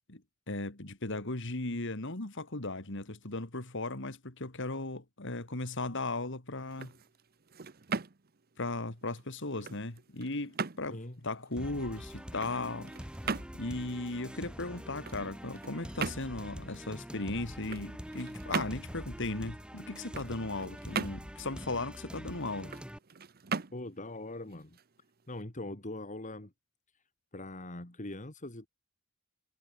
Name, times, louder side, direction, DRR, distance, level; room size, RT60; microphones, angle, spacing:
voice 1, 0.5-6.9 8.6-11.0 11.2-12.9 13.5-22.7, left 2 dB, 60° left, 2.9 m, -37 dB
sound 1, 6.6-25.4, right 5 dB, 45° right, 0.9 m, -41 dB
voice 2, 10.9-11.2 23.7-24.8 25.3-26.5 27.3-28.7, left 2 dB, 35° left, 2.6 m, -42 dB
sound 2, 11.6-23.0, equal, 5° right, 3.0 m, -45 dB
head